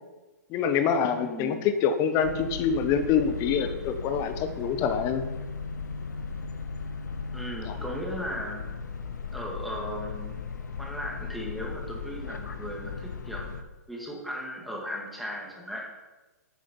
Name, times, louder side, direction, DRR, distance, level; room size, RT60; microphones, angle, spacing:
voice 1, 0.5-5.2 7.7-7.8, left 7 dB, 30° left, 9 dB, 1.2 m, -26 dB
voice 2, 1.2-1.7 7.3-8.7 9.3-10.4 10.8-13.4 13.9-15.9, equal, ahead, -2 dB, 2.4 m, -36 dB
sound 1, 2.2-13.6, left 5 dB, 75° left, 1.0 m, -37 dB
9.7 x 8.3 x 5.5 m, 1.2 s
hypercardioid pair, 120°, 9 cm